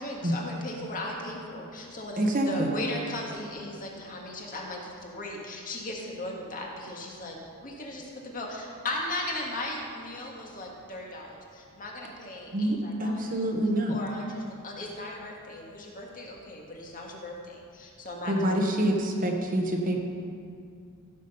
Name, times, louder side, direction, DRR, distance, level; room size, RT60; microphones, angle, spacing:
voice 1, 0.0-13.4 13.9-18.8, left 1 dB, 40° left, -2 dB, 1.8 m, -37 dB
voice 2, 2.2-2.7 12.5-14.0 18.3-20.0, right 1 dB, 40° right, 2 dB, 1.1 m, -26 dB
16.0 x 6.1 x 5.6 m, 2.3 s
head